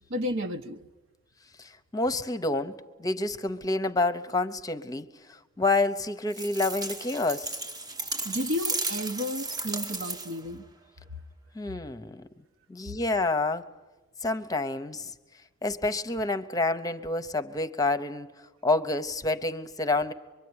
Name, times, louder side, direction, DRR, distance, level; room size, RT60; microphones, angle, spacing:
voice 1, 0.1-0.8 8.2-10.7, left 1 dB, 65° right, 1.0 m, -32 dB
voice 2, 1.6-7.6 11.5-12.3 12.7-13.7 14.2-15.1 15.6-20.1, left 2 dB, 15° left, 0.8 m, -28 dB
sound 1, 6.3-10.5, right 2 dB, 20° right, 1.0 m, -34 dB
25.0 x 22.5 x 9.6 m
head